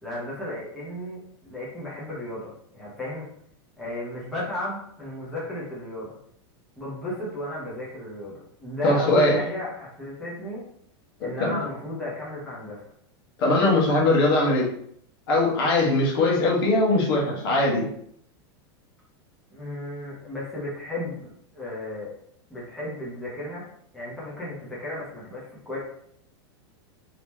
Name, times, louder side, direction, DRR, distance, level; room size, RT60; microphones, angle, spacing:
voice 1, 0.0-3.3 3.8-6.2 6.8-10.6 11.2-12.8 13.5-13.8 19.5-22.1 22.5-23.6 23.9-25.8, left 1 dB, ahead, -9 dB, 0.8 m, -34 dB
voice 2, 8.8-9.4 11.4-11.6 13.4-14.7 15.3-17.9, left 2 dB, 60° left, -2 dB, 1.2 m, -21 dB
2.9 x 2.9 x 3.4 m, 0.68 s
supercardioid pair, 180°, 14 cm